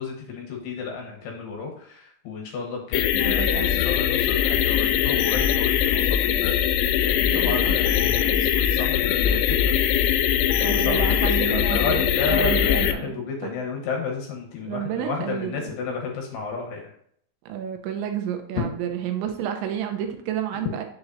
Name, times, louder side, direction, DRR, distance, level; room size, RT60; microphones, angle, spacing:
voice 1, 0.0-6.6 7.0-8.3 8.5-9.7 10.3-16.8, left 5 dB, 70° left, 0 dB, 2.8 m, -32 dB
sound 1, 2.9-12.9, left 10 dB, 85° left, 2.9 m, -21 dB
voice 2, 3.1-3.9 7.3-7.8 8.2-8.6 10.6-13.5 14.6-15.7 17.5-20.8, right 9 dB, 80° right, 5 dB, 3.0 m, -30 dB
7.9 x 7.0 x 2.7 m, 0.64 s
omnidirectional pair, 5.4 m